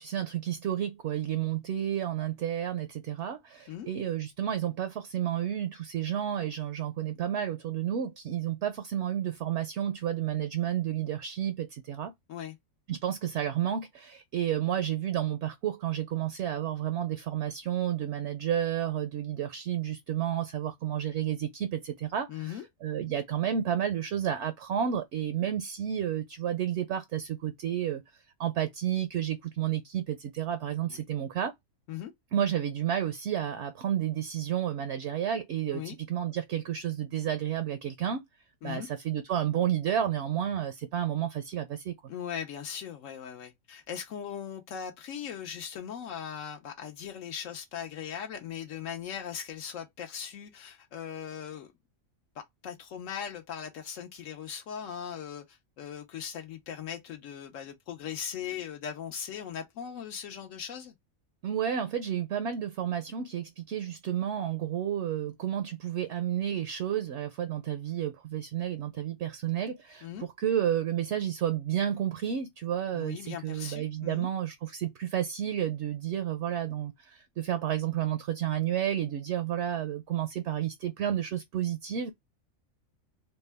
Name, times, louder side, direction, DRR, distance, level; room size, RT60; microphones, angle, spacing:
voice 1, 0.0-12.1 12.9-28.0 28.4-31.5 32.3-38.2 38.6-41.9 61.4-82.1, right 10 dB, 65° right, 0.8 m, -31 dB
voice 2, 22.3-22.7 30.8-31.0 31.9-32.1 35.7-36.0 38.6-38.9 42.1-51.7 52.6-60.9 70.0-70.3 72.9-74.3, left 8 dB, 75° left, 1.0 m, -39 dB
3.5 x 2.2 x 3.3 m
omnidirectional pair, 1.4 m